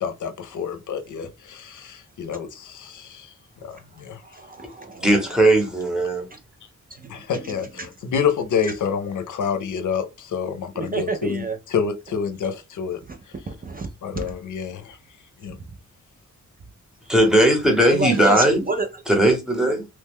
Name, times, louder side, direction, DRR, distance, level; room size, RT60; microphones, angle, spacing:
voice 1, 0.0-3.3 3.6-4.2 7.1-13.0 14.0-15.0 15.4-15.6, left 7 dB, 75° left, 0.6 m, -28 dB
voice 2, 4.2-5.1 6.3-6.4 6.9-7.9 10.7-11.6 13.1-13.2 13.5-13.9 14.1-14.3 17.9-18.9, right 3 dB, 30° right, 0.4 m, -29 dB
voice 3, 4.9-6.3 17.1-18.6 19.1-19.9, right 1 dB, ahead, 0.9 m, -18 dB
3.0 x 2.2 x 3.5 m
wide cardioid pair, 120°, 31 cm